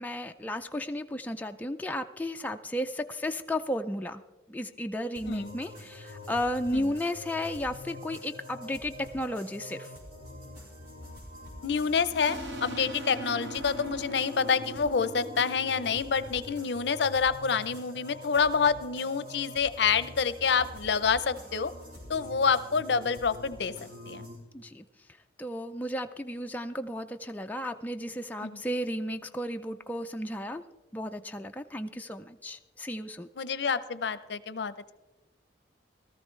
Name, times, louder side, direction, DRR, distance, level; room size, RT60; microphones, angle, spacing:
voice 1, 0.0-4.2 4.5-9.9 24.5-24.8 25.4-30.6 30.9-33.3, left 1 dB, 10° left, 5 dB, 0.3 m, -34 dB
sound 1, 5.2-24.4, left 1 dB, 55° right, 4.6 m, -45 dB
voice 2, 5.3-5.6 6.7-6.8 11.6-21.7 22.1-23.7 24.1-24.3 28.4-28.5 33.4-34.9, left 6 dB, 70° left, 15 dB, 0.6 m, -27 dB
sound 2, 12.2-17.6, equal, 90° right, 1.3 m, -42 dB
18.0 x 13.5 x 3.2 m, 1.1 s
head